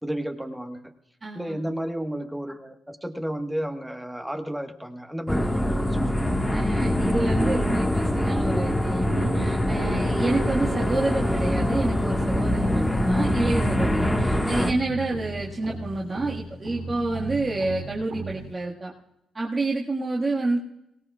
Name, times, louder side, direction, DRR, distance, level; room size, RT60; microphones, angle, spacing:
voice 1, 0.0-0.9 1.3-6.2 15.7-15.8, right 1 dB, 5° right, 5 dB, 1.5 m, -32 dB
voice 2, 1.2-1.6 6.5-18.9 19.3-20.6, right 2 dB, 30° right, -3 dB, 1.8 m, -28 dB
sound 1, 5.3-14.7, left 1 dB, 15° left, 1.6 m, -24 dB
sound 2, 9.1-18.6, right 4 dB, 85° right, 3.3 m, -36 dB
23.0 x 17.5 x 2.4 m, 0.85 s
supercardioid pair, 60°, 0 cm